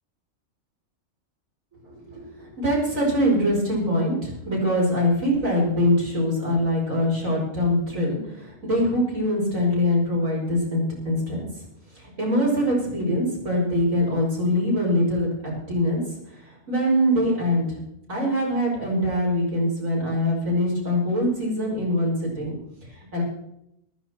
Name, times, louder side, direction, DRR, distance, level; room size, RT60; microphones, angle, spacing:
voice 1, 1.8-11.5 11.9-16.0 16.3-17.8 18.1-22.5 23.1-23.2, left 1 dB, 85° right, -3 dB, 5.8 m, -23 dB
14.5 x 14.0 x 4.4 m, 0.80 s
omnidirectional pair, 1.3 m